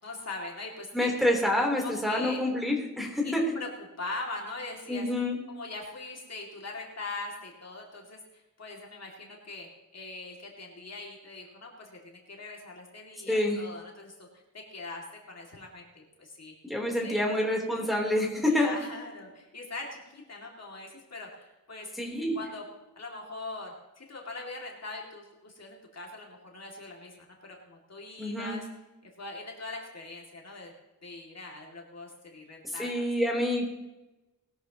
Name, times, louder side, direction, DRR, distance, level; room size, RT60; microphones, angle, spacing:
voice 1, 0.0-1.1 1.8-2.4 3.2-3.7 4.0-5.1 5.5-16.5 17.0-17.2 18.5-21.9 22.3-22.6 23.0-28.7 29.2-30.7 31.0-33.1, left 3 dB, 50° left, -1 dB, 2.5 m, -42 dB
voice 2, 0.9-3.6 4.9-5.4 13.3-13.6 16.6-18.8 22.0-22.4 28.2-28.6 32.8-33.7, left 1 dB, ahead, -2 dB, 3.6 m, -27 dB
20.0 x 13.5 x 3.0 m, 1.0 s
wide cardioid pair, 115°, 33 cm